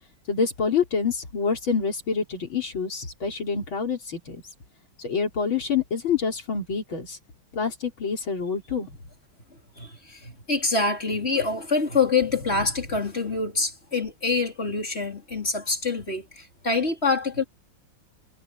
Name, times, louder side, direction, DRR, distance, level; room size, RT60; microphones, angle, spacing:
voice 1, 0.3-4.4 5.0-7.2 7.5-8.9, left 5 dB, 85° left, 4.7 m, -27 dB
voice 2, 9.8-17.4, left 4 dB, 30° left, 4.4 m, -26 dB
omnidirectional pair, 2.2 m